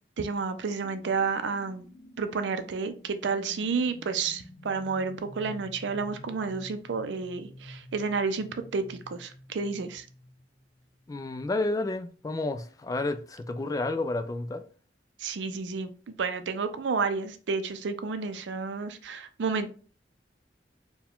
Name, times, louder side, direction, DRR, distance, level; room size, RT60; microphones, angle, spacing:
voice 1, 0.2-1.9 2.2-10.0 15.2-15.9 16.2-19.7, right 4 dB, 85° right, 0.4 m, -31 dB
sound 1, 0.8-11.1, left 1 dB, 70° left, 0.8 m, -49 dB
voice 2, 11.1-14.6, left 2 dB, 20° left, 0.3 m, -30 dB
4.6 x 2.2 x 3.5 m
head